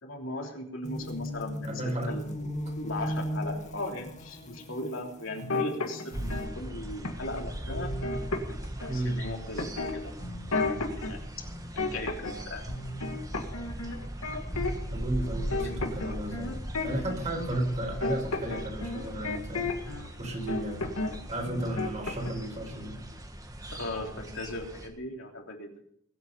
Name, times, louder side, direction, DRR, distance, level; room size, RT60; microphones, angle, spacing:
voice 1, 0.0-2.5 2.8-7.9 8.9-10.3 10.6-11.2 11.9-12.6 15.6-15.8 23.7-25.7, left 1 dB, 65° left, 1 dB, 3.2 m, -38 dB
sound 1, 0.8-6.4, equal, 35° left, 1.7 m, -37 dB
voice 2, 1.6-2.2 8.9-9.1 14.9-16.5 16.8-19.8 20.2-20.8 21.3-23.0, right 1 dB, 35° right, 2 dB, 4.4 m, -33 dB
sound 2, 5.4-6.5 7.0-7.4 7.7-9.0 9.6-11.1 11.5-12.4 12.7-14.9 15.2-20.1 20.5-21.1 21.4-22.5 22.7-23.0, left 3 dB, 85° left, 1.9 m, -33 dB
sound 3, 6.1-24.9, right 1 dB, 15° right, 1.6 m, -39 dB
22.0 x 8.3 x 5.4 m, 0.68 s
head